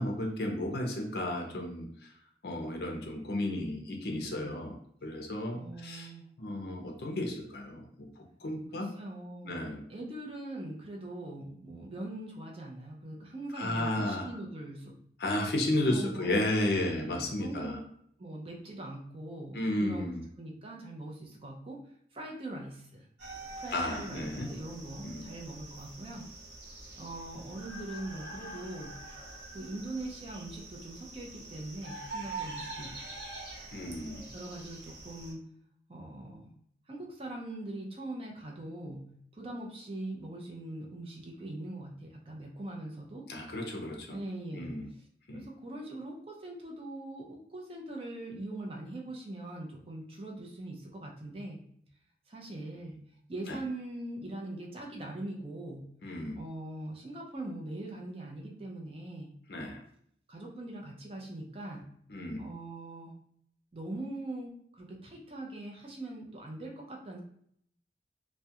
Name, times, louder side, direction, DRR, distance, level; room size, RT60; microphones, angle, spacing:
voice 1, 0.0-2.1 2.4-6.1 6.4-8.9 9.4-9.8 13.6-14.3 15.2-17.8 19.5-20.3 23.7-24.5 25.0-25.2 33.7-34.3 43.3-44.2 44.5-44.9 45.3-45.4 53.5-53.6 56.0-56.4 59.5-59.8 62.1-62.4, left 1 dB, 60° left, 2 dB, 0.5 m, -33 dB
voice 2, 5.5-6.3 8.7-9.6 9.9-15.0 15.9-17.8 18.2-20.1 20.4-21.8 22.1-23.1 23.5-26.3 27.0-29.0 29.5-33.0 34.3-35.4 35.9-36.5 36.9-39.0 39.3-43.3 44.1-44.8 45.3-51.6 52.3-53.0 53.3-55.9 56.4-59.3 60.3-61.9 62.4-63.1 63.7-67.2, right 1 dB, 30° right, 0 dB, 0.4 m, -42 dB
sound 1, 23.2-35.3, right 2 dB, 85° right, 0.9 m, -45 dB
2.3 x 2.1 x 2.7 m, 0.67 s
head